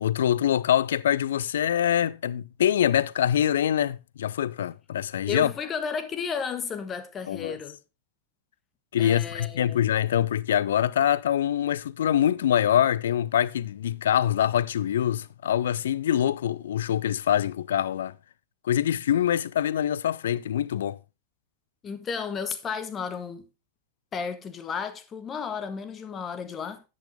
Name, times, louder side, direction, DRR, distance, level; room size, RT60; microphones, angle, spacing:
voice 1, 0.0-5.5 7.3-7.6 8.9-18.2 18.6-21.0, left 10 dB, 60° left, 0.5 m, -24 dB
voice 2, 5.3-7.8 9.0-9.8 21.8-23.4 24.1-26.8, left 6 dB, 25° left, 1.5 m, -33 dB
10.0 x 8.6 x 3.5 m
figure-of-eight pair, 90°, 0 cm